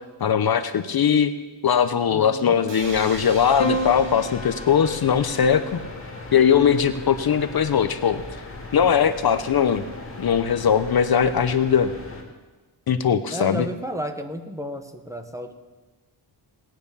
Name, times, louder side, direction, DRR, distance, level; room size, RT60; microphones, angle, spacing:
voice 1, 0.2-1.3 1.6-5.8 6.3-8.2 8.7-9.8 10.2-11.9 12.9-13.6, left 7 dB, 50° left, 11 dB, 0.7 m, -20 dB
voice 2, 2.1-2.6 13.3-15.6, equal, 5° right, 5 dB, 0.8 m, -32 dB
sound 1, 2.7-6.5, right 5 dB, 65° right, 1.4 m, -43 dB
sound 2, 2.8-12.2, left 2 dB, 25° left, 2.4 m, -39 dB
Piano, 3.6-8.1 9.3-9.9, equal, 70° left, 1.9 m, -34 dB
18.0 x 9.3 x 6.8 m, 1.2 s
wide cardioid pair, 165°, 47 cm